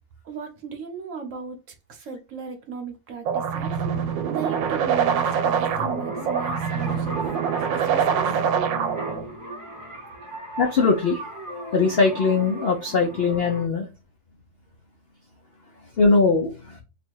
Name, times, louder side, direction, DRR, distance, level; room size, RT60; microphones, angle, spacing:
voice 1, 0.2-1.6 1.9-7.2 7.7-8.3, right 5 dB, 55° right, 1.0 m, -36 dB
sound 1, 3.2-9.2, right 7 dB, 85° right, 1.3 m, -24 dB
sound 2, 3.8-13.7, right 1 dB, 20° right, 0.6 m, -37 dB
voice 2, 10.6-11.2 11.5-13.9 16.0-16.8, left 4 dB, 85° left, 0.5 m, -21 dB
3.3 x 2.5 x 4.5 m
omnidirectional pair, 2.0 m